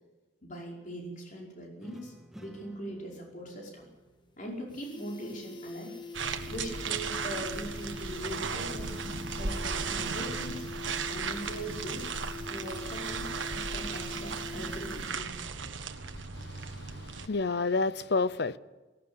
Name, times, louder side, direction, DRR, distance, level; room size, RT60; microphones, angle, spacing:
voice 1, 0.4-3.9 4.4-5.9 6.4-9.0 9.3-10.7 11.1-12.1 12.5-13.4 13.7-15.8, equal, 45° left, 5.2 m, -41 dB
sound 1, 1.8-5.2 9.0-12.4 13.4-17.2, equal, ahead, 1.6 m, -52 dB
sound 2, 3.8-3.9 4.2-4.3 4.6-15.4 15.7-15.8, left 3 dB, 25° left, 1.6 m, -44 dB
sound 3, 6.1-17.3, right 5 dB, 85° right, 1.5 m, -36 dB
voice 2, 16.4-18.6, left 3 dB, 60° left, 0.7 m, -30 dB
18.5 x 17.5 x 8.8 m
head